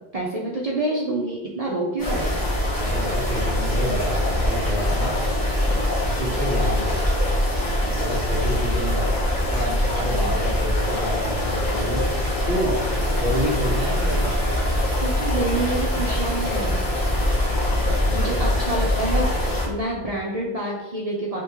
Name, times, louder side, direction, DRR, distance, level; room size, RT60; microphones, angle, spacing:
voice 1, 0.1-2.4 10.1-10.4 15.0-16.8 18.1-21.4, right 1 dB, 45° right, -4 dB, 0.5 m, -27 dB
sound 1, 2.0-19.7, left 1 dB, 20° left, 1.0 m, -23 dB
voice 2, 2.8-5.2 6.0-6.9 8.0-9.1 9.5-12.1 12.4-12.8 13.2-14.4 17.9-18.4, equal, 60° left, -6 dB, 1.6 m, -28 dB
sound 2, 12.9-17.3, right 3 dB, 80° right, 0.9 m, -41 dB
3.2 x 2.9 x 3.5 m, 1.0 s
omnidirectional pair, 1.1 m